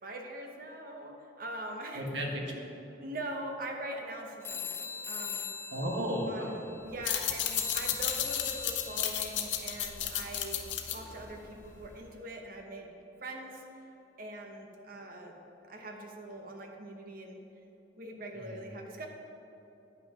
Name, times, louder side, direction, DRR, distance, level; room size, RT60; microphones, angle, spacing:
voice 1, 0.0-2.0 3.0-4.8 5.1-5.5 6.3-12.9 13.2-13.6 14.2-15.3 15.6-17.4 18.0-19.1, right 1 dB, 50° right, 2 dB, 1.0 m, -42 dB
voice 2, 1.9-2.7 5.7-6.7 18.3-18.7, equal, 80° right, 0 dB, 1.4 m, -34 dB
sound 1, 4.4-10.6, left 6 dB, 15° left, 0.3 m, -41 dB
sound 2, 6.9-12.1, left 10 dB, 85° left, 0.7 m, -34 dB
9.4 x 5.8 x 5.6 m, 2.9 s
head